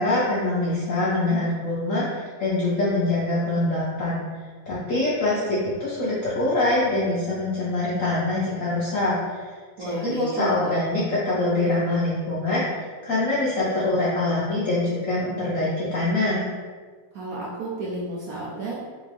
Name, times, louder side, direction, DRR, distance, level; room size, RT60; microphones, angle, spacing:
voice 1, 0.0-4.2 4.7-9.5 9.8-12.6 13.0-16.5, left 2 dB, 65° left, -7 dB, 0.8 m, -24 dB
voice 2, 9.8-10.7 17.1-18.8, right 2 dB, 80° right, -6 dB, 0.8 m, -31 dB
3.8 x 3.6 x 3.3 m, 1.5 s
omnidirectional pair, 2.3 m